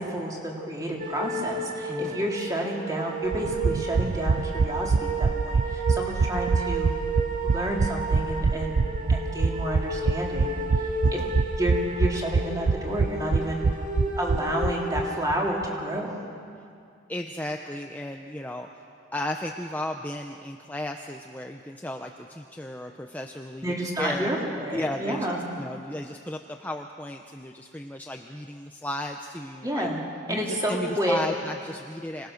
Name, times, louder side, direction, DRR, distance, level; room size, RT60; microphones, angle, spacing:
voice 1, 0.0-6.9 7.4-11.2 11.6-13.7 14.2-16.2 23.6-25.4 29.6-30.0 30.3-31.2, right 1 dB, 20° right, -2 dB, 3.0 m, -30 dB
sound 1, 1.0-16.1, right 2 dB, 40° right, 2.3 m, -33 dB
voice 2, 1.9-2.3 11.0-11.4 17.1-18.9 19.1-24.3 24.7-25.3 25.6-29.9 30.3-32.3, left 1 dB, 10° left, 3 dB, 0.6 m, -34 dB
sound 2, 3.3-15.0 15.3-15.4 15.6-15.7, right 4 dB, 65° right, 0.4 m, -25 dB
26.0 x 18.5 x 6.5 m, 2.4 s
head